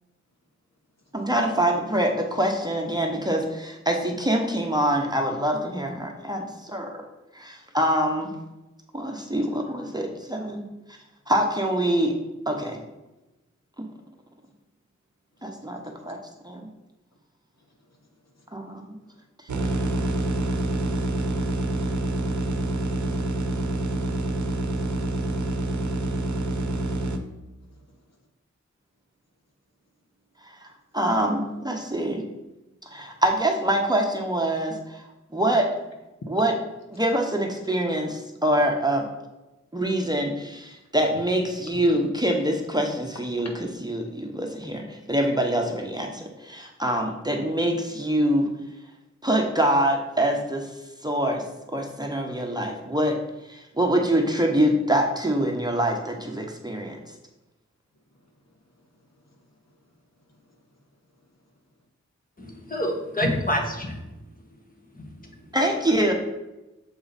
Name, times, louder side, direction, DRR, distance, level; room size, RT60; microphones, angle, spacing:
voice 1, 1.1-7.0 7.3-8.3 8.9-10.6 11.3-12.1 12.5-12.8 13.8-13.9 15.4-16.2 16.4-16.6 18.5-18.8 30.4-30.7 30.9-32.2 32.9-35.0 35.3-35.7 36.3-36.5 36.9-39.0 39.7-43.5 43.8-48.5 49.2-50.8 51.0-51.4 51.7-53.2 53.5-57.0 65.5-66.1, right 1 dB, 15° right, 1 dB, 0.9 m, -25 dB
voice 2, 15.8-16.2 18.0-18.1 18.3-18.5 19.0-19.1 26.6-26.7 27.6-28.0 52.3-52.4 58.2-58.3 59.0-59.2 60.3-60.6, left 1 dB, 60° left, 2 dB, 1.2 m, -61 dB
sound 1, 19.5-27.2, right 1 dB, 80° right, 0.8 m, -27 dB
voice 3, 62.4-64.0 64.9-65.4, equal, 30° left, 2 dB, 1.4 m, -28 dB
7.0 x 4.7 x 4.1 m, 1.0 s
wide cardioid pair, 70°, 29 cm